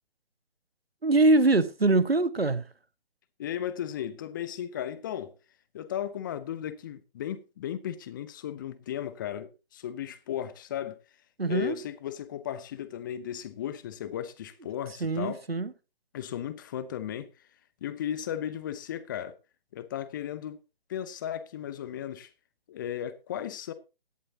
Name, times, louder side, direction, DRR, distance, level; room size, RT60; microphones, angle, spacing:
voice 1, 1.0-2.6 11.4-11.8 15.0-15.7, right 2 dB, 80° right, 1.5 m, -23 dB
voice 2, 3.4-5.3 5.7-11.0 11.5-15.4 16.1-17.3 17.8-19.4 19.7-20.6 20.9-22.3 22.7-23.7, left 10 dB, 20° left, 0.9 m, -35 dB
17.0 x 11.5 x 2.9 m
figure-of-eight pair, 140°, 30 cm